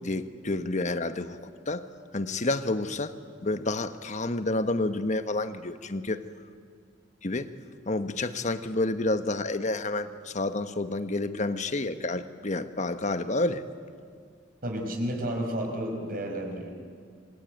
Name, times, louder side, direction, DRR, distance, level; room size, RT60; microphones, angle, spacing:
voice 1, 0.0-1.9 2.1-3.1 3.4-6.2 7.2-7.5 7.9-13.6, left 2 dB, 40° left, 10 dB, 1.2 m, -29 dB
voice 2, 14.6-16.7, equal, 50° right, 3 dB, 5.2 m, -31 dB
27.5 x 24.0 x 9.1 m, 2.1 s
head